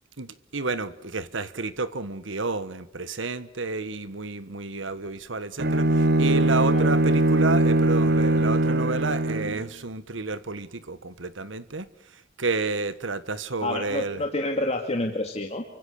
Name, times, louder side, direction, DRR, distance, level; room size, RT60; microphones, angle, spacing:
voice 1, 0.2-11.9 12.1-14.2, right 3 dB, 75° right, 14 dB, 1.4 m, -30 dB
Bowed string instrument, 5.6-9.6, right 2 dB, 55° right, 1.2 m, -21 dB
voice 2, 13.6-15.6, left 1 dB, 35° left, 2 dB, 2.3 m, -28 dB
29.0 x 25.0 x 6.6 m, 0.80 s
head